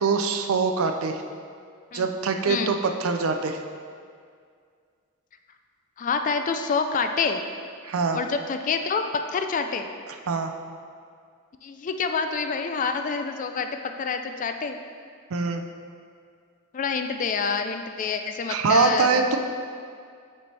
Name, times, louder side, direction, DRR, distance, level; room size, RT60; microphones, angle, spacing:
voice 1, 0.0-1.2 1.9-3.6 7.8-8.2 10.3-10.5 15.3-15.6 18.5-19.4, right 4 dB, 70° right, 6 dB, 0.5 m, -23 dB
voice 2, 6.0-7.4 8.1-9.9 11.6-14.8 16.7-19.2, left 5 dB, 35° left, 6 dB, 0.3 m, -27 dB
8.2 x 4.3 x 3.3 m, 2.2 s
head